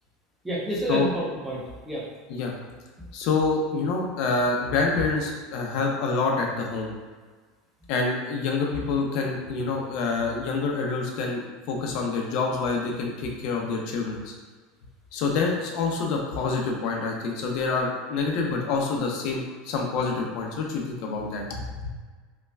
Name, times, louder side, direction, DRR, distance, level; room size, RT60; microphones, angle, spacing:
voice 1, 0.4-2.0, right 1 dB, 5° right, -5 dB, 0.8 m, -29 dB
voice 2, 3.1-6.9 7.9-14.3 15.1-21.9, left 4 dB, 55° left, 0 dB, 0.6 m, -27 dB
5.3 x 2.2 x 2.3 m, 1.4 s
supercardioid pair, 150°, 0 cm